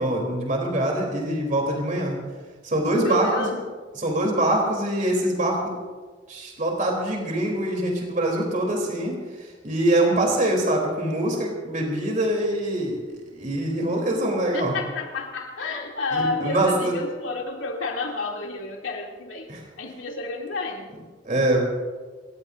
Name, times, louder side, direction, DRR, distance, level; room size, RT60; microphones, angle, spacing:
voice 1, 0.0-2.2 2.6-3.5 4.0-5.7 6.3-14.8 16.1-16.9 19.5-19.6 21.2-21.6, right 1 dB, 45° right, 0 dB, 3.7 m, -24 dB
voice 2, 3.0-3.6 14.5-19.5 19.8-20.9, left 2 dB, 85° left, -1 dB, 3.1 m, -30 dB
27.5 x 16.0 x 2.7 m, 1.4 s
head